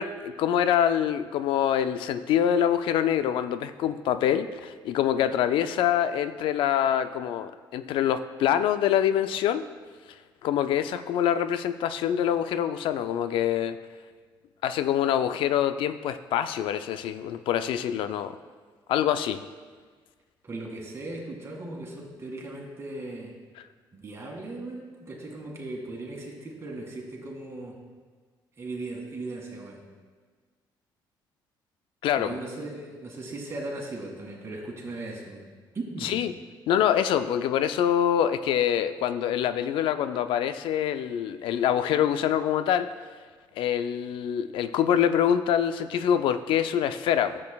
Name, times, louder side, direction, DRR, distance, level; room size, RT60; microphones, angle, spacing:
voice 1, 0.0-9.6 10.4-13.8 14.6-18.4 18.9-19.4 32.0-32.4 36.0-36.3 36.7-42.9 43.6-47.4, left 9 dB, 80° left, 11 dB, 0.4 m, -25 dB
voice 2, 20.4-23.3 23.9-27.8 28.6-29.8 32.2-35.5 35.7-36.1, right 2 dB, 30° right, -1 dB, 2.0 m, -38 dB
13.5 x 7.5 x 2.3 m, 1.5 s
cardioid pair, 125°, 9 cm